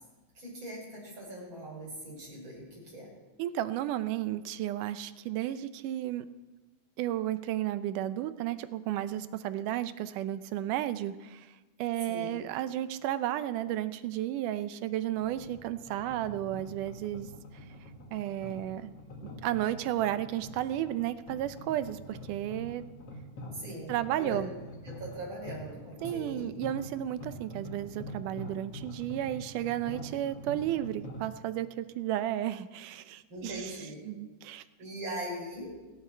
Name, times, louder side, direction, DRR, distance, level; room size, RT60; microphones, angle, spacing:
voice 1, 0.3-3.1 12.1-12.4 23.5-24.4 24.8-26.5 33.3-34.0 34.8-35.7, right 1 dB, 35° right, -4 dB, 6.7 m, -41 dB
voice 2, 3.4-6.3 7.0-11.5 11.8-17.3 18.1-18.9 19.4-22.8 23.9-24.5 26.0-33.7 34.1-34.6, right 12 dB, 80° right, 12 dB, 2.2 m, -33 dB
sound 1, 15.2-31.2, equal, 50° left, 2.6 m, -45 dB
29.5 x 10.5 x 4.5 m, 1.2 s
omnidirectional pair, 3.7 m